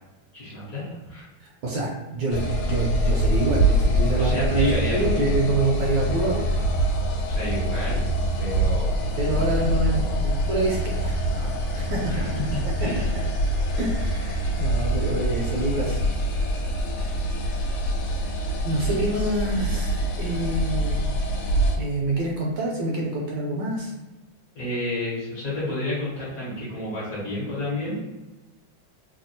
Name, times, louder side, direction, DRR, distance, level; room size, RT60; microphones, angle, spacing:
voice 1, 0.3-1.3 4.2-5.7 7.2-8.1 8.4-8.9 9.3-10.3 12.0-13.1 14.9-15.0 24.5-28.0, left 1 dB, 55° left, -8 dB, 1.2 m, -30 dB
voice 2, 1.4-6.8 9.2-12.3 13.0-13.1 13.8-16.0 18.6-21.1 21.8-23.9, right 2 dB, 75° right, -3 dB, 1.3 m, -27 dB
sound 1, 2.3-21.8, right 1 dB, 85° left, 1.4 m, -25 dB
3.5 x 2.3 x 2.6 m, 1.1 s
omnidirectional pair, 2.2 m